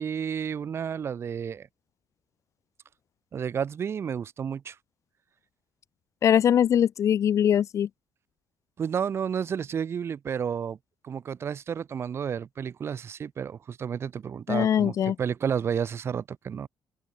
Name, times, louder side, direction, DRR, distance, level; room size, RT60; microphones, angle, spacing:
voice 1, 0.0-1.7 3.3-4.8 8.8-10.8 11.0-16.7, right 7 dB, 40° right, 2.7 m, -31 dB
voice 2, 6.2-7.9 14.5-15.2, left 9 dB, 50° left, 2.5 m, -22 dB
open air
cardioid pair, 150°, 7 cm